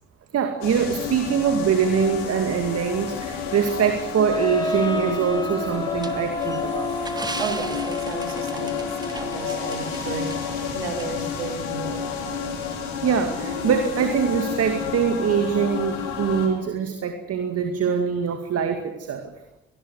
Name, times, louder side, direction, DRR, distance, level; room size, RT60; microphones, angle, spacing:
voice 1, 0.3-6.9 13.0-19.3, right 7 dB, 55° right, 6 dB, 2.3 m, -23 dB
sound 1, 0.6-16.5, left 6 dB, 75° left, 4.0 m, -30 dB
sound 2, 4.3-9.8, left 1 dB, 15° left, 2.6 m, -31 dB
sound 3, 6.0-10.0 10.3-10.4 11.0-11.1, right 2 dB, 15° right, 2.4 m, -37 dB
voice 2, 7.4-12.2, right 6 dB, 85° right, 6 dB, 2.5 m, -34 dB
24.5 x 19.0 x 7.9 m, 0.94 s
figure-of-eight pair, 40°, 30 cm